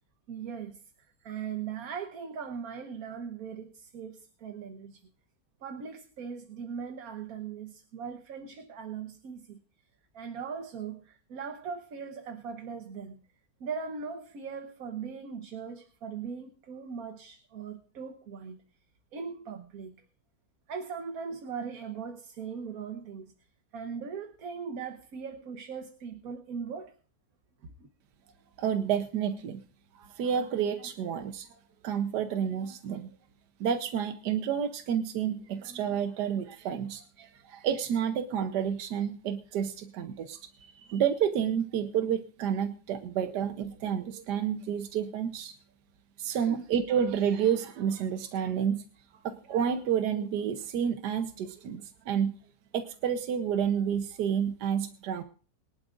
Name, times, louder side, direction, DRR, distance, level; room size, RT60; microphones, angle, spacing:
voice 1, 0.3-0.8 1.2-5.0 5.6-9.6 10.1-13.2 13.6-18.6 19.1-20.0 20.7-23.3 23.7-26.9 27.6-27.9 46.5-46.6, right 6 dB, 60° right, 6 dB, 1.5 m, -39 dB
voice 2, 28.6-29.6 30.0-31.5 31.8-33.1 33.6-45.5 46.2-48.8 49.2-52.3 52.7-55.2, right 8 dB, 80° right, 8 dB, 1.4 m, -30 dB
23.0 x 11.5 x 2.5 m, 0.39 s
omnidirectional pair, 1.8 m